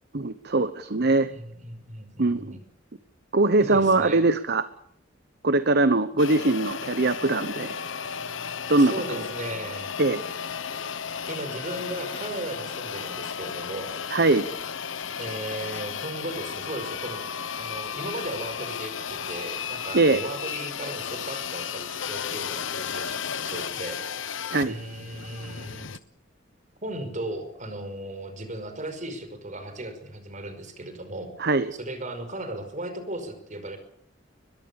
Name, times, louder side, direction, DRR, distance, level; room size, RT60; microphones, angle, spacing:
voice 1, 0.1-1.3 2.2-2.6 3.3-4.6 5.4-7.8 8.7-9.2 10.0-10.2 14.1-14.5 19.9-20.2 24.5-24.7 31.4-31.7, right 2 dB, 60° right, 12 dB, 1.0 m, -22 dB
voice 2, 1.3-2.6 3.6-4.3 8.2-8.4 8.8-9.9 11.3-13.9 15.2-17.2 17.6-24.0 24.6-25.9 26.8-31.5 31.8-33.8, right 1 dB, 40° right, 8 dB, 5.4 m, -36 dB
sound 1, 6.2-26.0, left 7 dB, 90° left, 1.1 m, -34 dB
23.0 x 21.0 x 7.2 m, 0.72 s
head